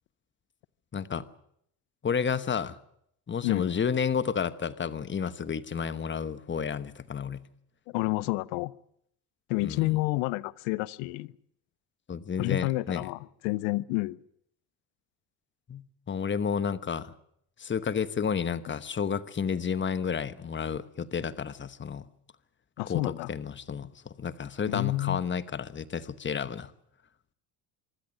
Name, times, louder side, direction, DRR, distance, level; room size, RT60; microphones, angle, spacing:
voice 1, 0.9-1.3 2.0-2.8 3.3-7.4 9.6-10.0 12.1-13.1 15.7-17.1 17.6-22.1 22.9-23.0 23.3-26.7, left 6 dB, 25° left, 1.1 m, -31 dB
voice 2, 7.9-8.7 9.5-11.3 12.4-14.2 22.8-23.3 24.7-25.2, left 21 dB, 90° left, 0.8 m, -29 dB
24.5 x 12.5 x 9.4 m
cardioid pair, 105°, 46 cm